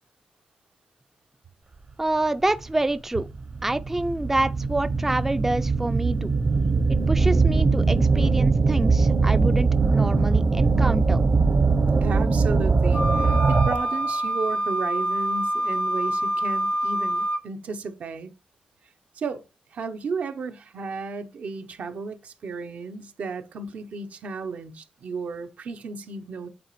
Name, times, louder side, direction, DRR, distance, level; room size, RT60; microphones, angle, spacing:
voice 1, 2.0-3.3 3.6-6.3 6.9-11.2, right 2 dB, 10° right, 0.3 m, -27 dB
sound 1, 2.6-2.7 3.3-14.0, right 4 dB, 40° right, 0.7 m, -21 dB
voice 2, 12.0-18.3 19.1-19.4 19.7-26.5, right 4 dB, 75° right, 0.8 m, -33 dB
Wind instrument woodwind instrument, 12.9-17.4, right 1 dB, 90° left, 1.3 m, -26 dB
8.7 x 4.0 x 3.1 m
wide cardioid pair, 105°, 3 cm